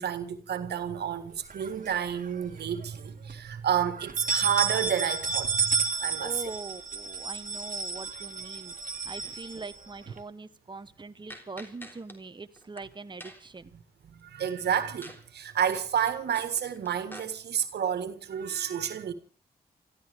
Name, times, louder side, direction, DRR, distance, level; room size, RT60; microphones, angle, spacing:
voice 1, 0.0-6.4 14.1-19.1, right 9 dB, 85° right, 1.7 m, -30 dB
sound 1, 1.5-2.4 2.8-2.9 3.3-3.4 4.0-10.2, right 5 dB, 55° right, 1.8 m, -31 dB
voice 2, 6.2-13.7, right 3 dB, 30° right, 1.0 m, -42 dB
sound 2, 11.3-12.2 12.6-12.8 13.2-13.6 15.0-15.2 15.5-17.3, equal, 10° left, 3.4 m, -46 dB
29.0 x 14.5 x 3.5 m
cardioid pair, 50°, 17 cm